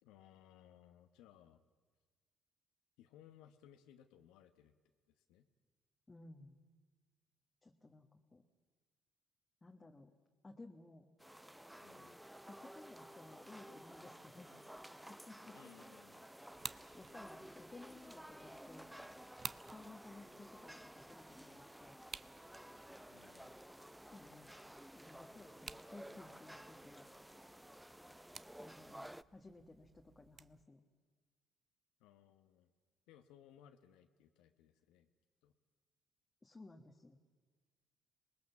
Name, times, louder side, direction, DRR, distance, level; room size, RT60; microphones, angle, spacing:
voice 1, 0.0-1.6 3.0-4.7 5.1-5.4 11.8-12.2 15.5-16.3 23.1-23.6 32.0-32.7 33.1-35.1 35.4-35.5, left 10 dB, 80° left, 8 dB, 1.0 m, -63 dB
voice 2, 6.1-6.6 7.6-8.4 9.6-10.1 10.4-11.1 12.4-14.7 15.1-15.6 16.9-18.9 19.7-22.0 24.1-24.6 24.9-27.1 28.6-30.8 36.4-37.2, left 2 dB, 25° left, 2 dB, 1.6 m, -57 dB
sound 1, 11.2-29.2, right 1 dB, 5° right, 0.6 m, -54 dB
sound 2, 16.5-30.7, right 6 dB, 45° right, 0.6 m, -55 dB
26.0 x 19.5 x 7.2 m, 1.5 s
supercardioid pair, 60°, 0 cm